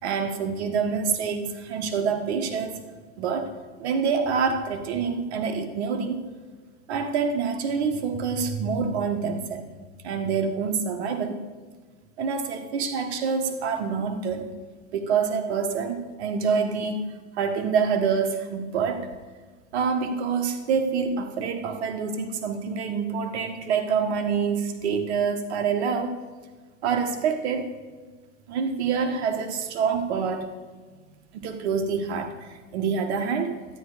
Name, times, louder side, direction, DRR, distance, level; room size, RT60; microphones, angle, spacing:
voice 1, 0.0-2.8 3.2-3.5 3.8-6.2 6.9-9.6 10.0-11.4 12.2-14.5 14.9-17.0 17.4-19.1 19.7-26.2 26.8-27.7 28.5-30.5 31.3-33.6, right 6 dB, 60° right, 6 dB, 1.5 m, -26 dB
12.5 x 10.5 x 5.0 m, 1.4 s
hypercardioid pair, 130°, 38 cm